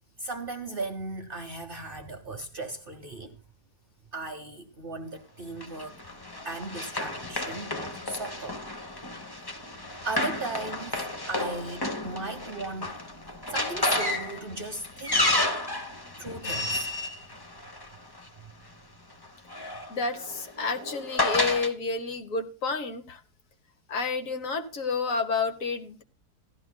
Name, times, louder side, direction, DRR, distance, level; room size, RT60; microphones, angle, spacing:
voice 1, 0.2-3.4 4.1-6.0 6.4-8.6 10.0-11.0 11.3-12.9 13.5-15.3 16.2-16.9 18.4-18.5, right 2 dB, 45° right, 0.8 m, -36 dB
Run, 5.6-18.2 19.2-21.7, left 2 dB, 20° left, 0.6 m, -31 dB
voice 2, 19.9-23.2 23.9-26.0, left 4 dB, 60° left, 1.4 m, -30 dB
16.0 x 12.0 x 2.2 m
omnidirectional pair, 1.7 m